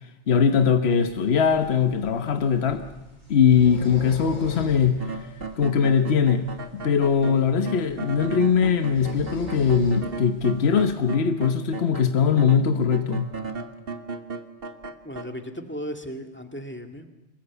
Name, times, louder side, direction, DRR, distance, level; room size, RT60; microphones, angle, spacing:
voice 1, 0.3-2.8 3.3-5.2 5.6-6.4 6.7-13.3, left 6 dB, 65° left, 1.3 m, -21 dB
sound 1, 0.9-11.0, left 1 dB, 40° left, 6.6 m, -43 dB
sound 2, 5.0-12.1 12.4-15.2, right 4 dB, 55° right, 1.5 m, -35 dB
voice 2, 15.0-17.1, equal, 10° left, 1.9 m, -36 dB
25.5 x 21.0 x 8.2 m
omnidirectional pair, 1.2 m